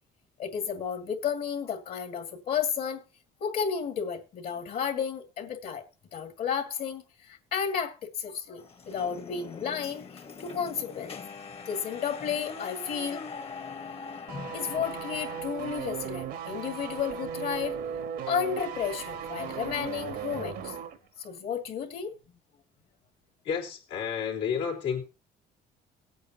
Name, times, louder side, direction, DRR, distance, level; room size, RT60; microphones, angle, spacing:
voice 1, 0.4-3.0 3.4-5.8 6.1-11.2 11.7-14.0 14.5-17.8 18.3-20.8 21.2-22.1, left 7 dB, 60° left, 2.1 m, -32 dB
sound 1, 8.6-15.4, left 5 dB, 35° left, 1.1 m, -42 dB
sound 2, 14.3-21.0 21.2-21.4, right 7 dB, 80° right, 1.3 m, -37 dB
voice 2, 23.4-25.0, left 7 dB, 90° left, 3.2 m, -31 dB
19.5 x 8.4 x 2.9 m
cardioid pair, 110°, 17 cm